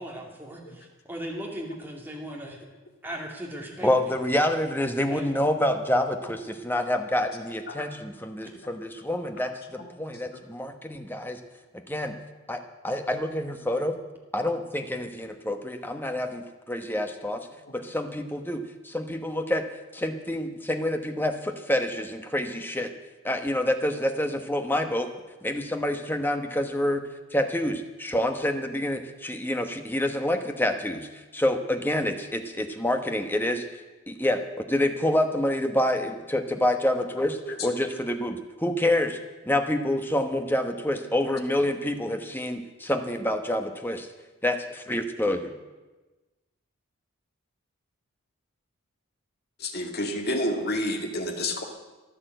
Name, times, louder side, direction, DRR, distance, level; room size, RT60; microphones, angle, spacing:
voice 1, 0.0-2.6 3.0-3.9 5.1-5.3, equal, 10° right, -1 dB, 2.6 m, -37 dB
voice 2, 3.8-11.4 11.9-12.2 12.5-13.9 14.3-17.5 17.7-19.6 19.9-22.9 23.2-25.1 25.4-27.0 27.3-33.6 34.1-39.2 39.5-44.1 44.4-45.5, left 1 dB, 10° left, 6 dB, 1.0 m, -27 dB
voice 3, 49.6-51.6, left 1 dB, 45° left, 3 dB, 2.1 m, -29 dB
14.5 x 11.5 x 7.9 m, 1.2 s
head